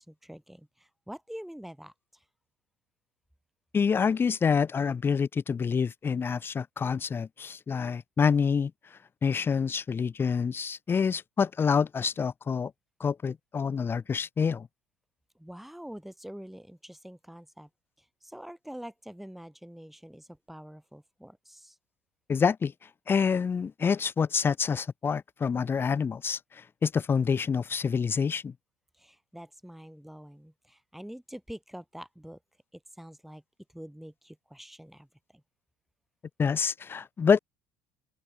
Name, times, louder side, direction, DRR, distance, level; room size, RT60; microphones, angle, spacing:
voice 1, 0.0-2.2 15.3-17.7 18.0-21.8 29.0-32.4 32.7-33.4 33.7-35.1 35.3-35.4, equal, ahead, 1.6 m, -46 dB
voice 2, 3.7-8.7 9.2-12.7 13.0-14.7 22.3-22.7 23.1-28.5 36.4-37.4, left 6 dB, 25° left, 0.3 m, -27 dB
open air
hypercardioid pair, 65°, 9 cm